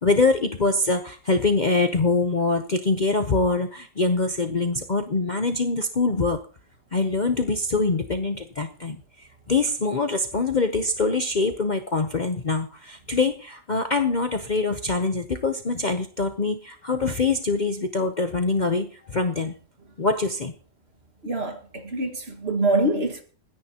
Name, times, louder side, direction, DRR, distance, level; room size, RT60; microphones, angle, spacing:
voice 1, 0.0-6.4 6.9-19.5 20.0-20.5, left 3 dB, 40° left, 0.8 m, -24 dB
voice 2, 21.2-23.2, right 2 dB, 45° right, 2.0 m, -25 dB
29.5 x 10.0 x 2.9 m
omnidirectional pair, 1.5 m